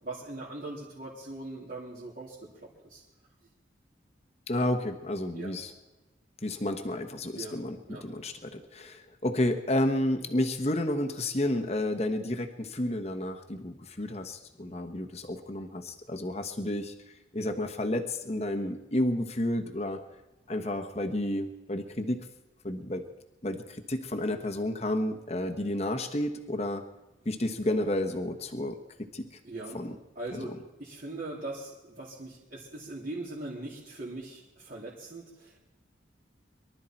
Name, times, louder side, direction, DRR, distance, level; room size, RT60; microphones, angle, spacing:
voice 1, 0.0-3.0 5.3-5.5 7.4-7.5 7.9-8.0 29.4-29.8 30.1-30.5 30.8-35.7, right 2 dB, 50° right, -8 dB, 3.1 m, -40 dB
voice 2, 4.5-5.7 6.4-16.9 17.3-20.0 20.5-22.2 22.6-23.0 23.4-26.8 27.2-28.8 29.1-29.3 29.7-30.0 30.3-30.4, left 1 dB, 35° left, 5 dB, 1.2 m, -31 dB
23.5 x 12.5 x 4.5 m, 1.0 s
head